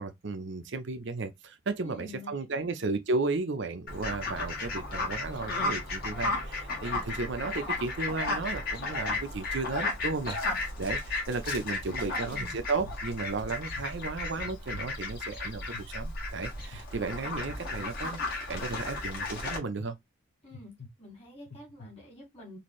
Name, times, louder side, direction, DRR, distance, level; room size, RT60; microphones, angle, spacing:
voice 1, 0.0-10.4 10.8-20.0, right 3 dB, 55° right, 0.6 m, -34 dB
voice 2, 1.8-2.7 12.0-12.5 20.4-20.7 21.0-22.6, left 1 dB, 30° left, 2.2 m, -48 dB
Fowl, 3.9-19.6, left 2 dB, 45° left, 1.6 m, -34 dB
sound 1, 10.6-11.0 11.5-12.0 12.5-13.0 13.5-13.9 14.4-14.9 15.4-15.9 16.4-16.8 17.5-17.9 18.5-18.9 19.5-19.9 20.5-20.9 21.5-21.9, left 2 dB, 60° left, 0.8 m, -48 dB
4.3 x 2.7 x 3.1 m
head